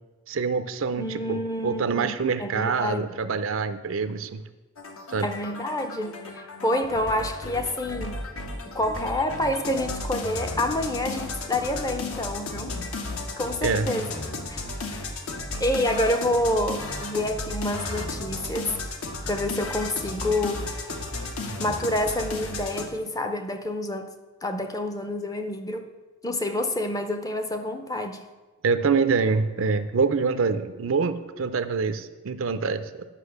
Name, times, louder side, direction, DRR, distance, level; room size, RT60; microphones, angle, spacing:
voice 1, 0.3-4.4 5.1-5.3 13.6-13.9 28.6-33.0, right 5 dB, 60° right, 11 dB, 0.5 m, -25 dB
voice 2, 1.0-3.1 5.2-8.2 8.7-12.8 13.4-14.1 14.5-15.1 15.6-18.7 19.2-21.0 21.6-24.1 24.4-25.9 26.2-28.2, left 1 dB, 15° left, 8 dB, 0.6 m, -28 dB
sound 1, 4.8-22.9, left 2 dB, 70° left, 1.2 m, -34 dB
9.9 x 5.7 x 6.6 m, 1.2 s
head